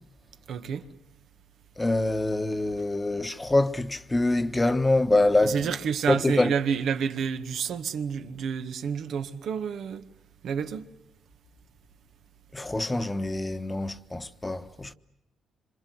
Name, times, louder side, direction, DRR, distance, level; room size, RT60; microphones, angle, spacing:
voice 1, 0.5-0.9 5.4-10.0 10.4-10.9, right 7 dB, 70° right, 1.9 m, -29 dB
voice 2, 1.8-5.7 6.1-6.5 12.5-14.9, left 2 dB, 15° left, 1.4 m, -25 dB
26.5 x 26.5 x 8.0 m
cardioid pair, 90°, 0 cm